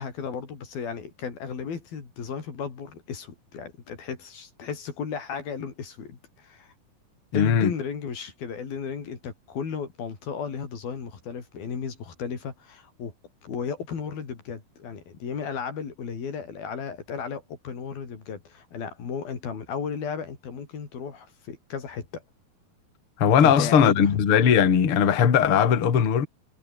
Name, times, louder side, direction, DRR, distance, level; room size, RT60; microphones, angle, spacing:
voice 1, 0.0-6.7 7.3-13.1 13.4-22.2 23.4-24.2, left 6 dB, 85° left, 6.1 m, -34 dB
voice 2, 7.3-7.7 23.2-26.3, left 8 dB, 40° left, 2.8 m, -19 dB
omnidirectional pair, 4.1 m